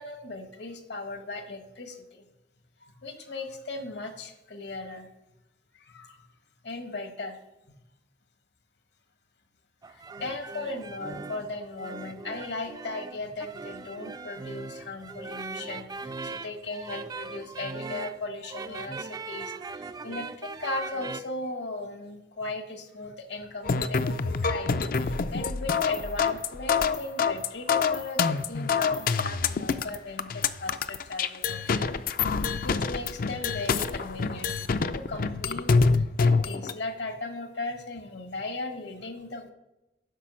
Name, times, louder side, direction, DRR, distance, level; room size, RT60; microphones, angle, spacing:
voice 1, 0.0-2.2 2.8-5.1 5.7-6.3 6.6-7.4 9.9-39.5, left 2 dB, 70° left, 8 dB, 1.4 m, -37 dB
sound 1, 9.8-21.2, right 4 dB, 20° right, 0.4 m, -39 dB
sound 2, 23.6-36.7, left 5 dB, 55° left, 0.5 m, -26 dB
10.0 x 6.0 x 6.2 m, 0.94 s
head